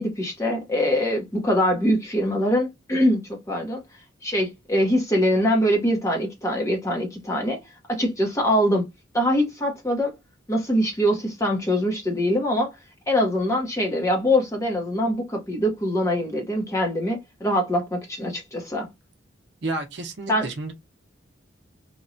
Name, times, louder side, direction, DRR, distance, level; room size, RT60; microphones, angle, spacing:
voice 1, 0.0-3.8 4.2-7.6 7.9-8.9 9.1-10.1 10.5-12.7 13.1-18.9 20.3-20.5, equal, 15° left, 0.7 m, -23 dB
voice 2, 19.6-20.7, right 2 dB, 55° right, 0.7 m, -31 dB
2.9 x 2.2 x 2.5 m
head